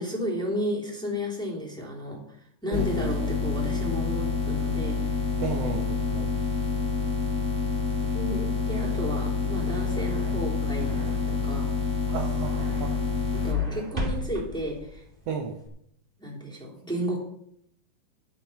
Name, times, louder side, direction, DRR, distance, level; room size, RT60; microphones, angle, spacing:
voice 1, 0.0-2.4 2.6-5.3 8.1-11.0 11.3-11.7 13.3-15.0 16.2-17.2, equal, ahead, -4 dB, 3.1 m, -33 dB
sound 1, 2.7-13.5, left 4 dB, 25° left, 2.2 m, -27 dB
voice 2, 2.7-3.3 5.4-6.3 12.1-13.1 15.3-15.6, right 6 dB, 70° right, 4 dB, 1.5 m, -34 dB
sound 2, 9.6-15.7, equal, 20° right, 1.7 m, -38 dB
11.5 x 9.2 x 5.8 m, 0.73 s
omnidirectional pair, 4.1 m